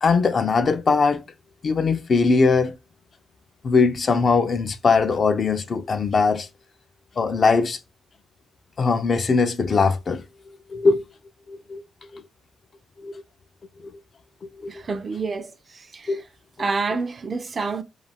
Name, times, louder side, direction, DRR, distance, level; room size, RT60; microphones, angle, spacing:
voice 1, 0.0-1.2 1.6-2.8 3.6-6.5 7.2-7.8 8.8-10.2 10.7-11.0 11.5-11.8 12.1-12.2 13.0-13.2 14.6-14.8 16.1-16.2, left 4 dB, 40° left, 0.3 m, -20 dB
voice 2, 14.7-16.3 16.6-17.8, right 4 dB, 35° right, 0.3 m, -28 dB
2.3 x 2.2 x 3.3 m
cardioid pair, 110°, 0 cm